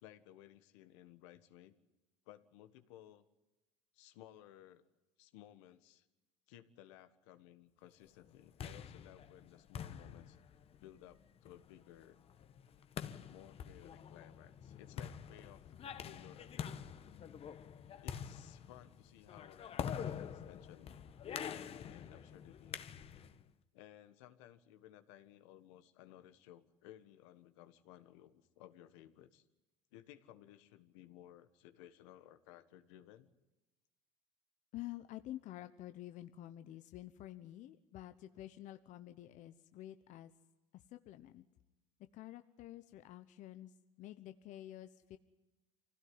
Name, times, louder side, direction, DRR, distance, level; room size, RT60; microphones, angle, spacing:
voice 1, 0.0-1.7 2.3-3.2 3.9-4.8 5.2-6.1 6.5-10.4 10.8-12.2 13.3-15.7 16.0-17.0 18.0-20.9 21.5-22.8 23.7-29.5 29.9-33.3, left 12 dB, 80° left, 10 dB, 1.6 m, -58 dB
sound 1, 8.2-23.4, left 8 dB, 40° left, 1.4 m, -46 dB
voice 2, 34.7-40.3 40.7-41.4 42.1-45.2, left 14 dB, 55° left, 9 dB, 1.1 m, -49 dB
25.0 x 16.5 x 9.8 m, 1.1 s
supercardioid pair, 100°, 15 cm